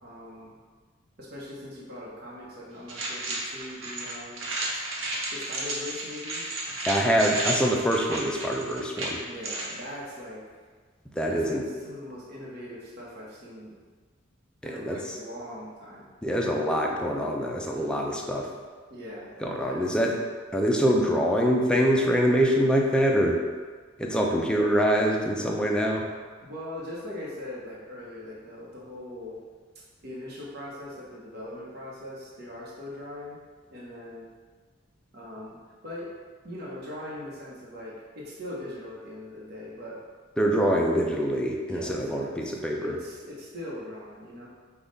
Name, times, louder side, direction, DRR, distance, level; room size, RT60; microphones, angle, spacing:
voice 1, 0.0-0.5 1.2-4.5 5.3-6.5 9.2-10.4 11.3-11.6 11.8-13.7 14.6-16.1 18.9-19.8 26.4-29.4 30.0-33.4 33.7-34.3 35.1-35.6 35.8-36.1 36.4-40.0 41.6-44.5, left 1 dB, 55° right, -6 dB, 0.9 m, -40 dB
sound 1, 2.9-9.8, right 2 dB, 75° right, 0.9 m, -33 dB
voice 2, 6.9-9.2 11.2-11.6 14.6-15.2 16.2-18.5 19.4-20.2 20.5-23.4 24.0-26.0 40.4-42.9, equal, 5° left, -1 dB, 0.4 m, -24 dB
5.3 x 2.4 x 3.9 m, 1.5 s
head